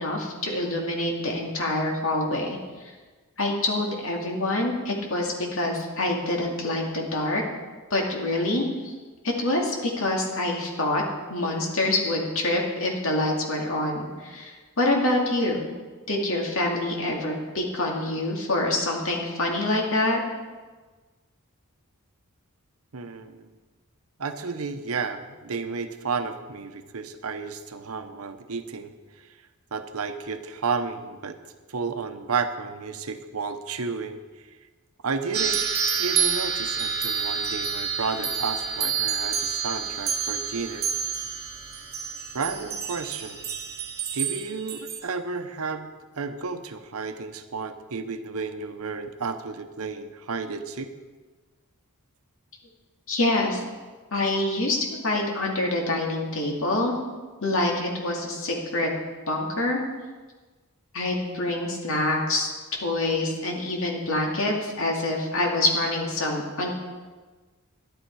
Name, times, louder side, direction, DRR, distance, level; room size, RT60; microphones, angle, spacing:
voice 1, 0.0-2.6 3.4-7.4 7.9-8.9 9.2-11.0 11.3-15.7 16.1-20.2 53.1-53.6 54.1-56.9 57.4-58.9 59.3-59.8 60.9-62.5 62.8-66.7, left 2 dB, 65° left, 0 dB, 2.4 m, -26 dB
voice 2, 22.9-23.4 24.2-28.9 29.7-31.4 31.7-34.2 35.0-35.6 36.0-40.9 42.3-43.4 44.1-45.9 46.2-50.9, right 4 dB, 70° right, 9 dB, 0.8 m, -32 dB
sound 1, 35.3-45.0, right 7 dB, 45° right, 1.3 m, -28 dB
11.5 x 11.5 x 4.8 m, 1.3 s
head